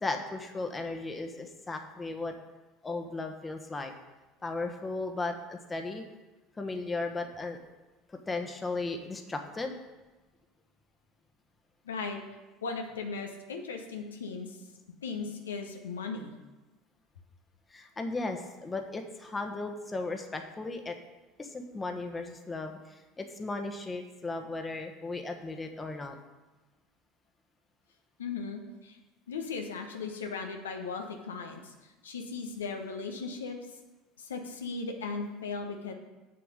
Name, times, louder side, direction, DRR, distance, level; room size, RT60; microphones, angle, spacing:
voice 1, 0.0-2.3 2.8-3.9 4.4-6.0 6.6-7.6 8.3-9.7 17.7-21.0 21.4-26.1, left 3 dB, 20° left, 5 dB, 1.2 m, -36 dB
voice 2, 11.8-12.2 12.6-14.6 15.0-16.3 28.2-29.0 29.3-33.6 34.2-35.9, left 4 dB, 80° left, 3 dB, 0.8 m, -37 dB
7.6 x 6.8 x 5.1 m, 1.2 s
hypercardioid pair, 70°, 0 cm